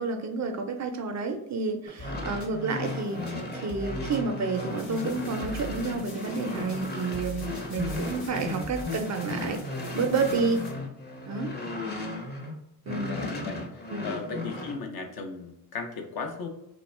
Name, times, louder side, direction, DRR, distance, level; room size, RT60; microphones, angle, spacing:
voice 1, 0.0-9.6 10.0-10.7 11.3-11.5 12.9-13.2 13.9-14.1, right 4 dB, 40° right, 6 dB, 0.4 m, -30 dB
sound 1, 1.9-12.5 12.8-14.8, left 2 dB, 25° left, 0.7 m, -35 dB
sound 2, 2.0-8.8, left 2 dB, 40° left, 1.0 m, -42 dB
sound 3, 4.8-10.7, left 3 dB, 85° left, 0.9 m, -49 dB
voice 2, 13.0-13.6 14.0-16.5, left 4 dB, 60° left, 4 dB, 0.7 m, -36 dB
2.4 x 2.2 x 3.1 m, 0.83 s
supercardioid pair, 60°, 43 cm